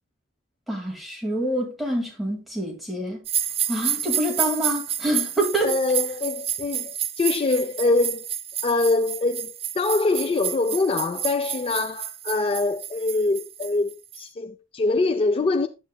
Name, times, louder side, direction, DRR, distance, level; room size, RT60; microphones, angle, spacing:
voice 1, 0.7-3.2 3.7-5.8, right 1 dB, ahead, 2.0 m, -26 dB
sound 1, 3.2-14.2, right 10 dB, 30° right, 0.5 m, -30 dB
voice 2, 5.6-8.3 8.6-15.7, left 3 dB, 30° left, 0.4 m, -24 dB
9.5 x 8.0 x 2.2 m
head